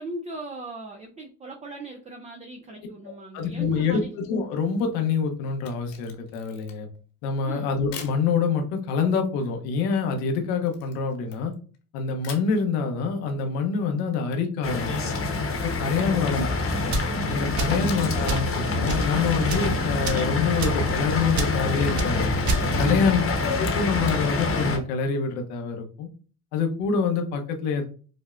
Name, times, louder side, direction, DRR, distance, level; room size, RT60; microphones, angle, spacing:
voice 1, 0.0-4.1 7.4-7.7 16.0-16.4 17.7-17.9 22.8-23.2, right 3 dB, 15° right, 2 dB, 0.4 m, -38 dB
voice 2, 3.0-4.0 4.3-6.9 7.2-11.5 11.9-15.1 15.6-16.6 16.8-16.9 17.3-22.3 22.8-26.1 26.5-27.8, left 5 dB, 85° left, 4 dB, 0.9 m, -26 dB
Camera, 5.5-7.0 7.9-8.2 10.7-11.8 12.2-12.5 15.2-16.7 17.8-18.3 18.6-18.7 20.7-22.1 22.3-22.8 23.5-24.2, left 8 dB, 65° left, 1.1 m, -45 dB
sound 1, 14.6-24.8, left 3 dB, 30° left, 0.9 m, -26 dB
sound 2, 16.8-17.1 17.6-17.8 18.3-18.5 18.8-19.1 19.4-19.7 20.0-20.3 20.6-20.8 21.3-21.5 22.0-22.1 22.4-22.7, right 4 dB, 40° right, 0.8 m, -28 dB
5.2 x 2.1 x 2.4 m, 0.40 s
supercardioid pair, 95°, 44 cm